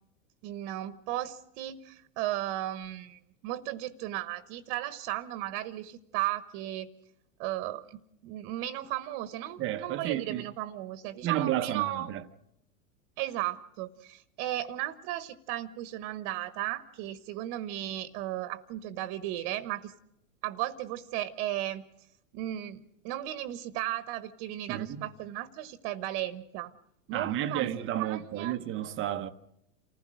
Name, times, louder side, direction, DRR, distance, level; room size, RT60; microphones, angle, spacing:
voice 1, 0.4-6.9 7.4-12.1 13.2-19.9 20.4-21.8 22.3-26.7 27.1-28.6, right 14 dB, 45° right, 1.1 m, -35 dB
voice 2, 9.6-10.5 11.2-12.2 24.7-25.1 27.1-29.3, right 12 dB, 30° right, 0.8 m, -32 dB
28.5 x 15.5 x 6.3 m
hypercardioid pair, 120°, 44 cm